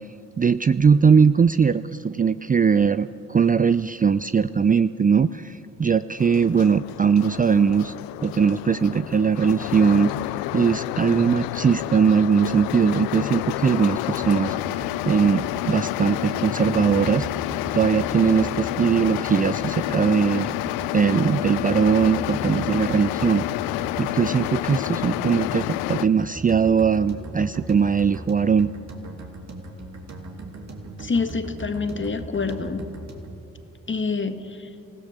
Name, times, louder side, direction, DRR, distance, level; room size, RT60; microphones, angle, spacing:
voice 1, 0.4-7.9 8.2-10.1 10.5-17.3 17.7-20.5 20.9-23.5 24.0-28.7, right 6 dB, 25° right, 14 dB, 0.5 m, -20 dB
sound 1, 6.2-26.1, left 17 dB, 75° left, 0.5 m, -29 dB
sound 2, 14.2-33.4, right 2 dB, 45° right, 2.8 m, -39 dB
voice 2, 31.0-32.9 33.9-34.7, left 4 dB, 30° left, 9 dB, 1.8 m, -27 dB
25.5 x 16.5 x 6.7 m, 2.6 s
hypercardioid pair, 40°, 37 cm